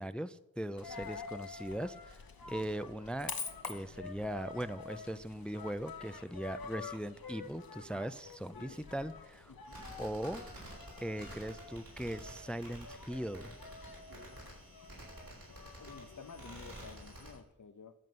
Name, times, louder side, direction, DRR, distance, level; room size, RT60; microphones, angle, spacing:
voice 1, 0.0-2.2 2.5-3.3 3.7-9.5 10.0-10.4 11.0-13.5, right 1 dB, 5° left, 14 dB, 0.4 m, -39 dB
Coin (dropping), 0.8-17.4, left 5 dB, 85° left, 1.0 m, -48 dB
voice 2, 9.5-9.8 14.1-14.5 15.8-17.9, left 5 dB, 60° left, 11 dB, 0.8 m, -53 dB
sound 1, 9.7-17.3, right 1 dB, 75° right, 4.8 m, -51 dB
13.0 x 5.4 x 7.8 m, 0.95 s
wide cardioid pair, 65°, 35 cm